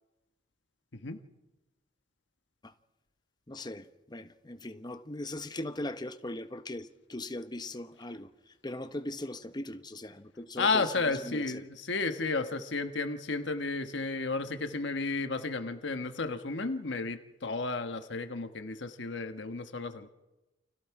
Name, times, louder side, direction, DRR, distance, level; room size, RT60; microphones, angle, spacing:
voice 1, 3.5-10.9 11.2-11.6, left 1 dB, 25° left, 1.0 m, -40 dB
voice 2, 10.6-20.1, left 3 dB, 65° left, 1.2 m, -32 dB
29.5 x 25.5 x 4.8 m
head